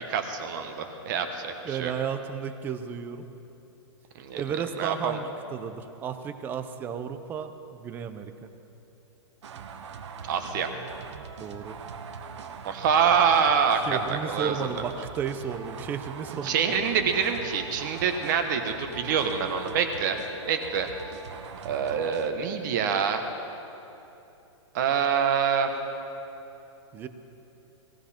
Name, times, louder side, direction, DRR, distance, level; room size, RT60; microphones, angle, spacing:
voice 1, 0.1-1.9 4.2-4.4 4.8-5.2 10.3-10.7 12.6-14.6 16.4-20.2 20.5-20.9 21.6-23.2 24.7-25.7, right 7 dB, 40° right, 6 dB, 1.2 m, -25 dB
voice 2, 1.6-3.3 4.3-8.5 11.4-11.7 13.8-16.6 26.9-27.1, right 7 dB, 15° right, 10 dB, 0.4 m, -33 dB
sound 1, 9.4-22.3, right 6 dB, 70° right, 1.2 m, -42 dB
18.5 x 15.5 x 4.3 m, 3.0 s
hypercardioid pair, 165°, 15 cm